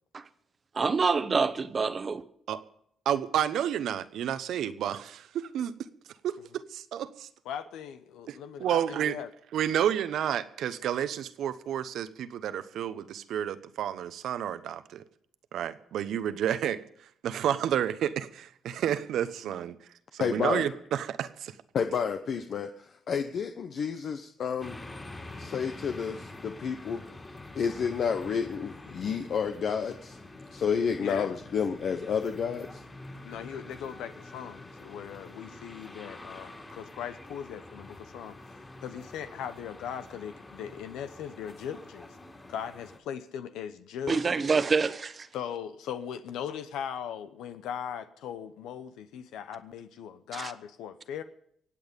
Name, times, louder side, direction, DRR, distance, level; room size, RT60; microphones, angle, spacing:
voice 1, 0.7-2.2 44.1-45.3 50.3-50.5, right 5 dB, 35° right, 1.0 m, -26 dB
voice 2, 3.0-5.7 6.2-7.3 8.3-9.2 9.5-15.0 15.5-16.8 17.2-19.8 20.1-21.6, right 10 dB, 75° right, 0.9 m, -30 dB
voice 3, 7.4-9.3 31.0-31.4 33.2-38.4 38.8-42.2 42.5-44.4 45.3-51.2, left 8 dB, 85° left, 0.9 m, -39 dB
voice 4, 20.2-20.7 21.7-24.8 25.4-27.0 27.5-30.2 30.5-32.8, left 6 dB, 55° left, 0.9 m, -30 dB
sound 1, 24.6-43.0, left 2 dB, 20° left, 2.8 m, -46 dB
24.0 x 8.7 x 5.3 m
cardioid pair, 100°, 0 cm